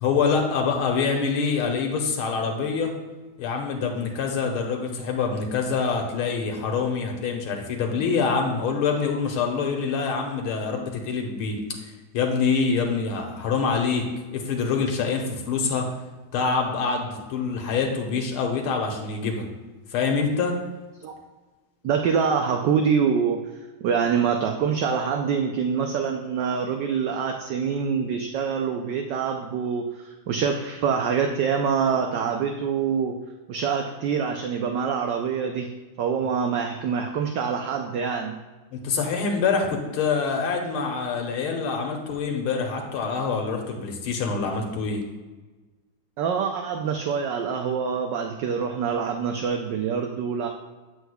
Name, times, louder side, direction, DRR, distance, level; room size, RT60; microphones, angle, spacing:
voice 1, 0.0-2.9 3.4-15.9 16.3-19.5 19.9-20.6 38.7-45.0, left 5 dB, 90° left, 2 dB, 1.9 m, -25 dB
voice 2, 21.8-23.4 23.8-33.1 33.5-35.7 36.0-38.3 46.2-50.5, right 6 dB, 70° right, 4 dB, 1.1 m, -25 dB
8.0 x 8.0 x 2.3 m, 1.2 s
omnidirectional pair, 2.3 m